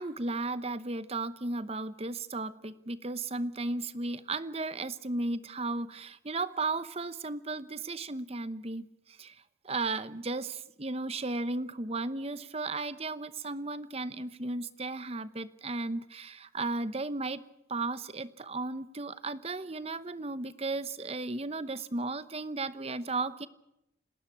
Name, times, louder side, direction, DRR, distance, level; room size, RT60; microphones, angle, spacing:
voice 1, 0.0-9.3 9.6-17.4 17.7-23.5, right 3 dB, 30° right, 14 dB, 0.9 m, -35 dB
28.0 x 13.0 x 8.5 m, 0.83 s
head